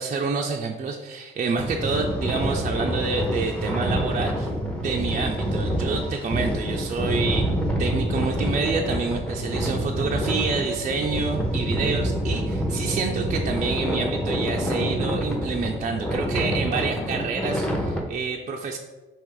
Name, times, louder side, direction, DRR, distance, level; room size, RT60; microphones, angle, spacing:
voice 1, 0.0-4.5 4.8-7.5 7.8-18.8, right 4 dB, 40° right, 1 dB, 0.4 m, -28 dB
sound 1, 1.6-18.0, equal, 5° left, 0.8 m, -27 dB
4.6 x 3.0 x 3.8 m, 1.2 s
cardioid pair, 90°, 20 cm